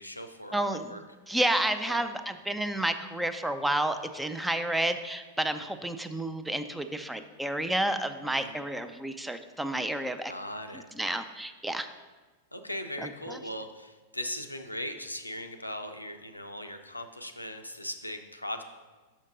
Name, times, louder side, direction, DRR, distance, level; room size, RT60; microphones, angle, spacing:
voice 1, 0.0-1.0 1.9-2.0 8.4-8.5 10.2-10.9 12.5-18.6, left 1 dB, 85° left, 6 dB, 0.5 m, -39 dB
voice 2, 0.5-10.3 10.7-11.9 13.0-13.4, right 1 dB, 5° right, 9 dB, 0.4 m, -31 dB
6.3 x 5.8 x 3.8 m, 1.3 s
figure-of-eight pair, 95°, 0 cm